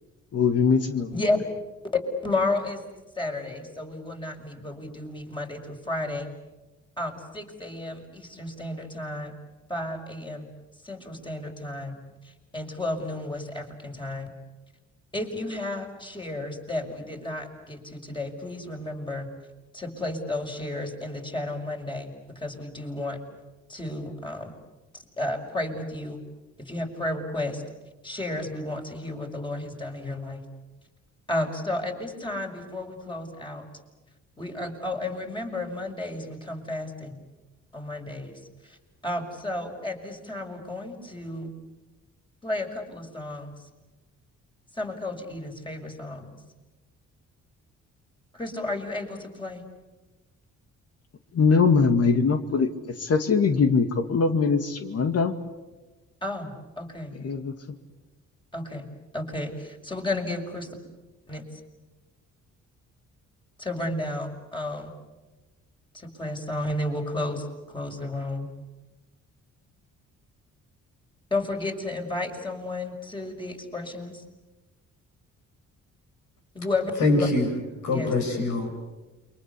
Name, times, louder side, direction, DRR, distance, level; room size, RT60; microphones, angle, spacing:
voice 1, 0.3-1.2 51.3-55.3 57.2-57.8, left 5 dB, 55° left, 8 dB, 2.0 m, -22 dB
voice 2, 1.9-2.8 3.1-6.3 7.0-9.3 9.7-10.5 10.8-12.0 12.2-14.3 15.1-19.3 19.7-22.1 22.4-23.2 23.7-24.5 24.9-26.2 26.6-27.6 28.0-30.4 31.3-33.7 34.4-37.2 37.7-38.8 39.0-41.5 42.4-43.7 44.7-46.3 48.3-49.6 56.2-57.1 58.5-58.9 59.1-60.8 61.3-61.6 63.6-64.9 65.9-68.5 71.3-74.2 76.5-77.3 77.9-78.1, left 2 dB, 15° left, 1 dB, 5.8 m, -32 dB
voice 3, 77.0-77.5 77.8-78.7, left 2 dB, 75° left, 4 dB, 7.8 m, -23 dB
28.5 x 24.0 x 8.4 m, 1.1 s
cardioid pair, 90°, 30 cm